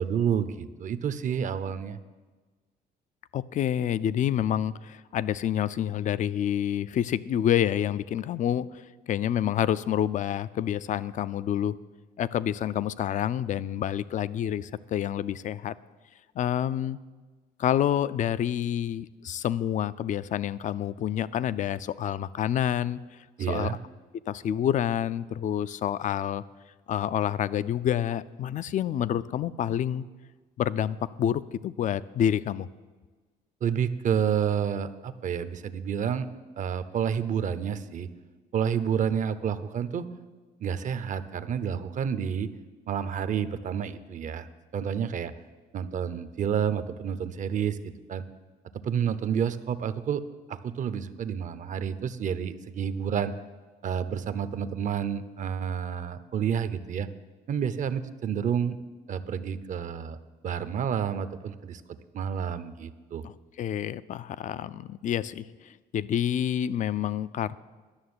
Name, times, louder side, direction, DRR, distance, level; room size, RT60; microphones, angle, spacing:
voice 1, 0.0-2.0 23.4-23.8 33.6-36.3 36.6-38.1 38.5-40.1 40.6-42.5 42.9-44.5 44.7-45.3 45.7-48.2 48.8-50.2 50.5-53.3 53.8-57.1 57.5-58.8 59.1-60.2 60.4-61.8 62.1-63.2, right 8 dB, 45° right, 13 dB, 0.7 m, -29 dB
voice 2, 3.3-11.8 12.2-15.7 16.4-17.0 17.6-23.0 23.5-23.8 24.3-26.4 26.9-30.0 30.6-32.7 63.2-67.6, left 10 dB, 50° left, 17 dB, 0.5 m, -28 dB
11.5 x 6.6 x 9.5 m, 1.3 s
cardioid pair, 110°, 17 cm